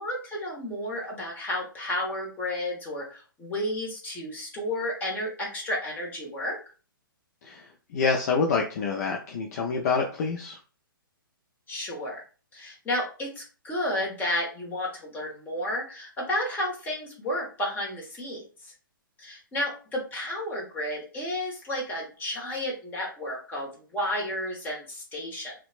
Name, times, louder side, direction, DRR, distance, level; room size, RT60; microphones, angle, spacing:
voice 1, 0.0-6.6 11.7-12.2 12.5-18.7 19.2-25.5, left 1 dB, 15° left, -3 dB, 1.1 m, -32 dB
voice 2, 7.9-10.6, left 5 dB, 45° left, 1 dB, 0.4 m, -27 dB
2.8 x 2.2 x 2.4 m, 0.36 s
figure-of-eight pair, 125°, 12 cm